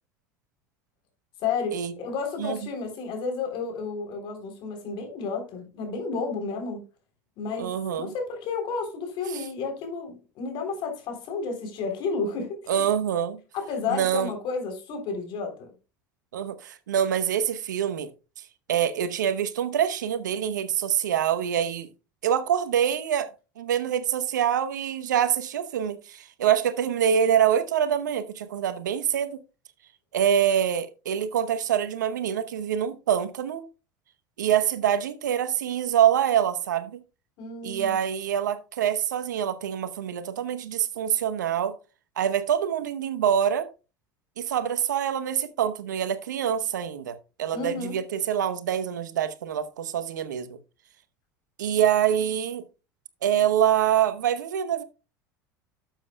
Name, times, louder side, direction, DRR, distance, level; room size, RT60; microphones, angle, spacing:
voice 1, 1.4-6.8 7.4-12.8 13.5-15.7 37.4-38.0 47.5-48.0, left 4 dB, 55° left, 3.5 m, -32 dB
voice 2, 7.6-8.1 12.7-13.4 13.9-14.3 16.3-18.1 18.7-21.9 22.2-23.3 23.6-29.4 30.1-33.7 34.4-37.0 37.6-41.8 42.2-43.7 44.4-50.6 51.6-52.6 53.2-54.8, right 9 dB, 85° right, 0.9 m, -25 dB
12.0 x 7.4 x 2.2 m
hypercardioid pair, 80°, 10 cm